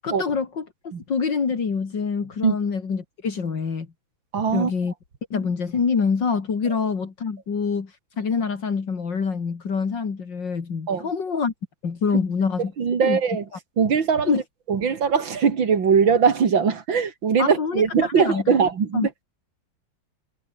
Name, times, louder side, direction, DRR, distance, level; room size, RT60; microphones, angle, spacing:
voice 1, 0.0-0.6 1.1-3.9 4.5-4.9 5.3-11.5 11.8-12.7 13.0-13.2 14.2-14.4 17.4-18.6 18.9-19.1, left 5 dB, 70° left, 3.2 m, -25 dB
voice 2, 4.3-4.7 10.9-11.1 12.8-13.4 13.8-14.4 14.7-19.1, right 6 dB, 85° right, 3.0 m, -21 dB
omnidirectional pair, 2.1 m